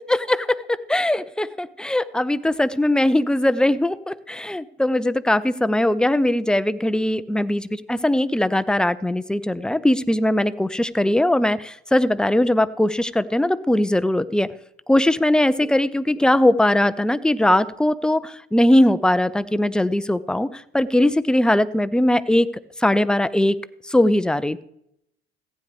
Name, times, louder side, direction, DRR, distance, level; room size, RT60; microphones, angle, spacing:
voice 1, 0.0-14.5 14.9-22.5 22.8-23.6 23.9-24.6, left 1 dB, 5° left, 15 dB, 0.5 m, -20 dB
15.5 x 9.5 x 3.5 m, 0.74 s
hypercardioid pair, 60°, 32 cm